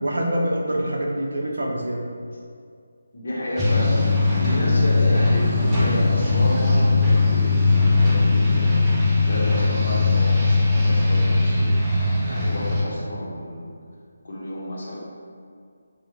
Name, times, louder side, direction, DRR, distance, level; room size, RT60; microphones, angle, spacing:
voice 1, 0.0-2.1, right 1 dB, 85° right, 0 dB, 0.4 m, -25 dB
voice 2, 3.1-11.9 12.2-13.7 14.2-15.0, left 1 dB, 60° left, -5 dB, 0.7 m, -31 dB
sound 1, 3.6-12.8, left 3 dB, 15° right, 0.4 m, -19 dB
2.2 x 2.0 x 3.0 m, 2.2 s
figure-of-eight pair, 165°, 0 cm